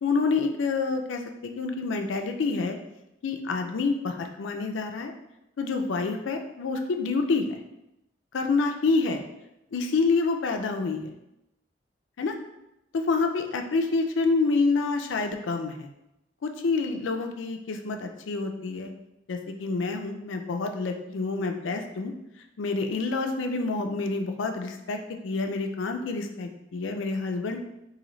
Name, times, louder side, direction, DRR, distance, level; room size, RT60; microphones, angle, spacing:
voice 1, 0.0-2.8 3.2-5.1 5.6-7.6 8.3-9.2 9.7-11.1 12.2-12.3 12.9-15.9 16.4-18.9 19.3-22.1 22.6-25.0 25.2-27.6, left 4 dB, 85° left, 5 dB, 0.4 m, -27 dB
3.8 x 2.7 x 3.1 m, 0.89 s
head